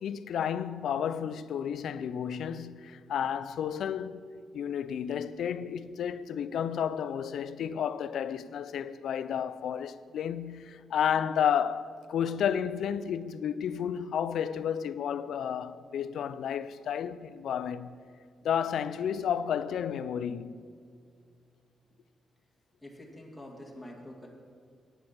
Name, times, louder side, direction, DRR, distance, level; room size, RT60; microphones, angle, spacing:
voice 1, 0.0-4.3 4.5-18.0 18.4-20.6, left 8 dB, 75° left, 0.4 m, -32 dB
voice 2, 22.8-24.3, left 1 dB, 5° left, 2.2 m, -46 dB
10.5 x 9.2 x 6.0 m
cardioid pair, 95°, 0 cm